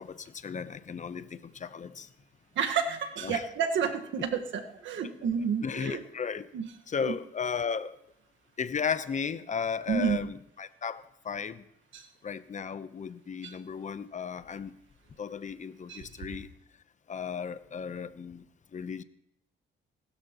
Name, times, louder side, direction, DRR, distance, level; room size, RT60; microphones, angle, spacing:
voice 1, 0.0-2.1 3.2-3.4 5.6-6.5 6.9-8.0 8.6-11.6 12.2-14.8 15.2-16.5 17.1-18.5 18.7-19.0, left 6 dB, 40° left, 13 dB, 0.8 m, -35 dB
voice 2, 2.5-6.0 6.5-6.7 7.0-7.1 9.9-10.2 11.9-12.1 13.4-13.5 15.9-16.0, right 7 dB, 75° right, 5 dB, 1.5 m, -30 dB
19.5 x 12.5 x 3.0 m, 0.81 s
cardioid pair, 90°, 20 cm